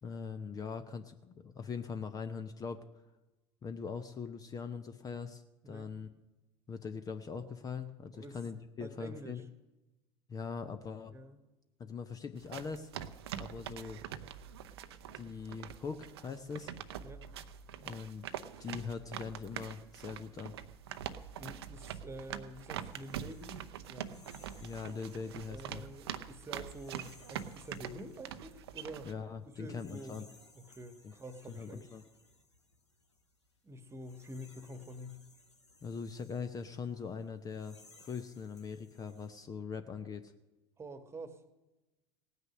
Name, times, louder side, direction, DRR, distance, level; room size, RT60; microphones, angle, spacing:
voice 1, 0.0-2.8 3.6-6.1 6.7-9.4 10.3-11.1 11.8-12.9 13.4-14.0 15.1-16.7 17.8-18.3 18.6-20.5 24.6-25.8 29.0-30.3 31.0-31.1 31.5-32.0 35.8-40.3, left 5 dB, 25° left, 10 dB, 0.8 m, -41 dB
voice 2, 5.6-6.0 8.1-8.4 8.8-9.4 11.1-11.4 17.0-17.3 21.4-23.6 23.9-24.3 25.2-29.1 29.5-30.2 30.6-32.0 33.6-35.3 40.8-41.4, right 1 dB, 20° right, 11 dB, 1.4 m, -47 dB
sound 1, 12.4-29.1, right 9 dB, 65° right, 0.7 m, -44 dB
sound 2, 22.0-39.3, left 2 dB, 85° left, 1.8 m, -63 dB
18.0 x 9.5 x 6.3 m, 1.0 s
figure-of-eight pair, 75°, 14 cm